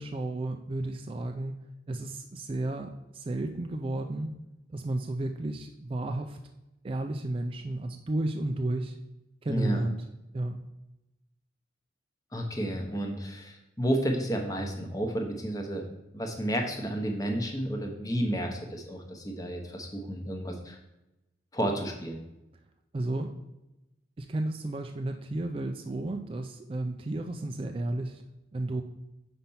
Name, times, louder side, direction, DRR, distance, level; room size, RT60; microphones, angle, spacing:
voice 1, 0.0-4.3 4.7-6.4 6.8-9.0 9.4-10.0 10.3-10.6 22.9-23.4 24.2-28.2 28.5-28.8, right 2 dB, 30° right, 4 dB, 0.3 m, -32 dB
voice 2, 9.5-9.8 12.3-15.9 16.1-20.8 21.5-22.2, right 1 dB, 20° left, 2 dB, 0.8 m, -31 dB
5.8 x 4.4 x 5.4 m, 0.95 s
head